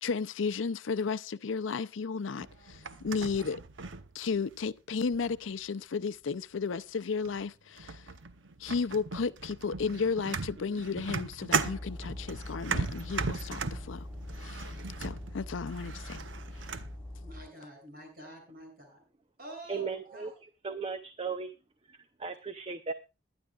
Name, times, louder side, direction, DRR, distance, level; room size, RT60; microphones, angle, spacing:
voice 1, 0.0-3.6 4.1-8.0 8.6-14.0 14.4-14.7 15.0-16.2, left 5 dB, 80° left, 0.6 m, -33 dB
sound 1, 2.4-4.6 5.1-5.6 6.6-6.7 7.2-7.5 7.8-17.0, right 4 dB, 70° right, 0.9 m, -37 dB
sound 2, 11.5-17.4, left 1 dB, 5° left, 7.5 m, -43 dB
voice 2, 17.2-19.0 19.4-20.3, right 1 dB, 50° right, 6.9 m, -48 dB
voice 3, 19.7-21.5 21.9-22.9, right 5 dB, 30° right, 0.7 m, -37 dB
21.5 x 10.5 x 2.4 m
head